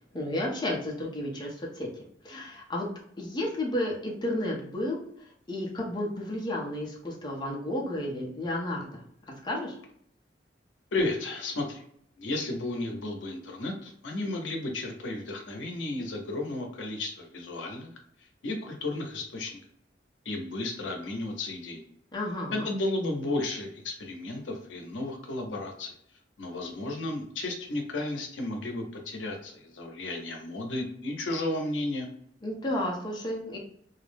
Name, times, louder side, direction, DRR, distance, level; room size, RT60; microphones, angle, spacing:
voice 1, 0.1-2.9 3.2-5.0 5.5-9.0 9.4-9.8 22.1-22.7 32.4-33.6, left 1 dB, 25° left, -2 dB, 0.6 m, -32 dB
voice 2, 10.9-11.8 12.2-17.9 18.4-19.6 20.3-21.8 22.5-25.9 26.4-32.1, left 2 dB, 90° left, 2 dB, 0.7 m, -33 dB
2.4 x 2.0 x 3.2 m, 0.66 s
head